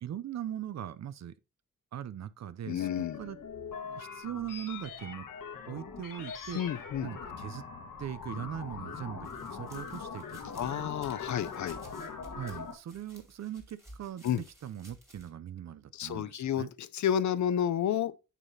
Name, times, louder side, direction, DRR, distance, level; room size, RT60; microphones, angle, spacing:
voice 1, 0.0-1.4 1.9-3.4 3.8-5.3 5.7-6.6 7.0-7.6 8.0-10.8 12.3-16.7, right 10 dB, 55° right, 0.5 m, -40 dB
voice 2, 2.7-3.2 6.5-7.1 10.6-11.8 14.2-14.4 15.9-18.1, left 9 dB, 60° left, 0.5 m, -31 dB
sound 1, 2.8-12.7, left 5 dB, 75° left, 1.4 m, -42 dB
sound 2, 9.2-15.3, equal, 10° right, 2.1 m, -55 dB
8.2 x 5.7 x 2.7 m
wide cardioid pair, 150°, 33 cm